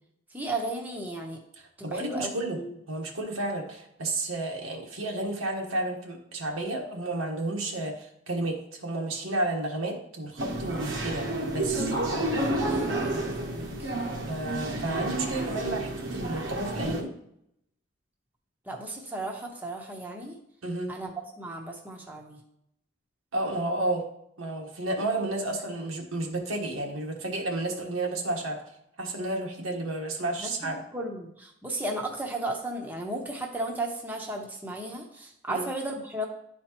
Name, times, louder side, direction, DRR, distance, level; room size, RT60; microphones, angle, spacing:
voice 1, 0.3-1.4 1.8-2.7 12.6-13.9 18.6-20.4 20.9-22.4 30.4-36.3, right 1 dB, 10° right, 1 dB, 0.8 m, -35 dB
voice 2, 1.8-2.6 2.9-11.3 11.5-11.9 14.2-17.1 20.6-20.9 23.3-24.0 24.4-28.6 29.0-30.8 35.5-35.7, right 2 dB, 90° right, 1 dB, 1.3 m, -31 dB
sound 1, 10.4-17.0, right 1 dB, 70° right, 1.0 m, -30 dB
11.0 x 4.3 x 3.0 m, 0.76 s
head